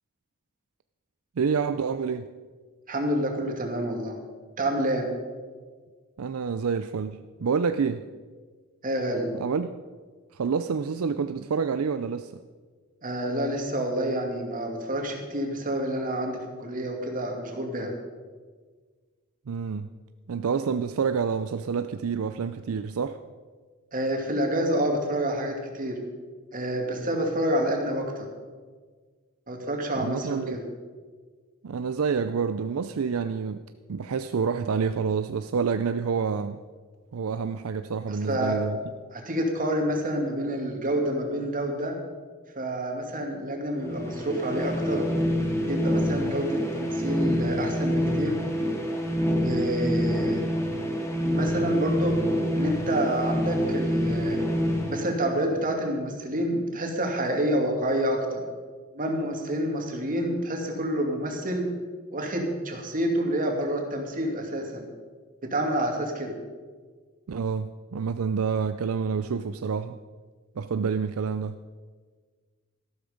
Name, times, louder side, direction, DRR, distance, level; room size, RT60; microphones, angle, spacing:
voice 1, 1.4-2.3 6.2-8.0 9.3-9.7 10.3-12.3 19.5-19.9 20.3-23.2 30.0-30.6 31.6-33.6 33.9-36.6 37.1-38.8 67.3-70.0 70.6-71.6, right 6 dB, 75° right, 11 dB, 0.5 m, -28 dB
voice 2, 2.9-4.2 4.6-5.1 8.8-9.3 13.0-17.9 23.9-26.0 26.5-28.3 29.5-30.6 38.1-38.6 39.1-42.0 42.6-45.0 45.7-48.4 49.4-50.5 51.2-52.2 52.5-54.4 54.9-58.4 58.9-61.6 62.1-64.9 65.4-66.3, right 1 dB, 40° right, 2 dB, 2.4 m, -28 dB
sound 1, 43.8-55.7, equal, 15° left, 2.0 m, -27 dB
13.5 x 12.0 x 5.2 m, 1.5 s
head